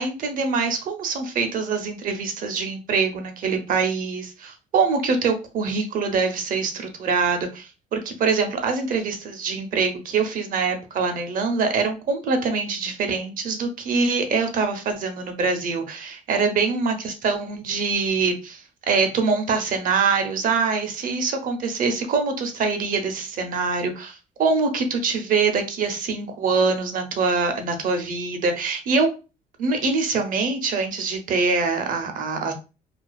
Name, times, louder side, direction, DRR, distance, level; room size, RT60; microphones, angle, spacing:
voice 1, 0.0-29.1 29.6-32.5, right 4 dB, 55° right, 0.6 m, -24 dB
2.4 x 2.3 x 2.3 m
cardioid pair, 110°, 17 cm